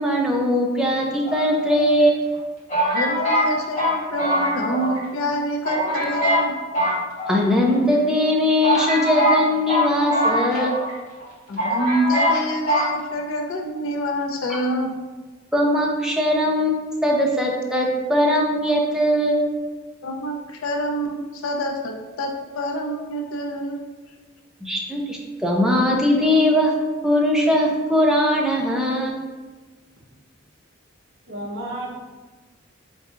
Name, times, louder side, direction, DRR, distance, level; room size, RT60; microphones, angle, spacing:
voice 1, 0.0-2.2 7.3-10.7 15.5-16.7 17.0-19.5 24.6-26.7 27.0-29.1, equal, 5° right, -1 dB, 0.5 m, -20 dB
sound 1, 1.2-2.0 2.7-5.0 5.3-5.4 5.6-6.5 6.7-7.7 8.3-8.4 8.6-10.9 11.2-11.3 11.6-12.4 12.7-12.9, equal, 35° left, 1.2 m, -22 dB
voice 2, 2.9-6.5 11.5-14.9 20.0-23.8, equal, 85° left, 2 dB, 0.5 m, -26 dB
voice 3, 31.3-31.9, right 1 dB, 55° right, -2 dB, 0.8 m, -32 dB
4.6 x 2.7 x 2.4 m, 1.3 s
head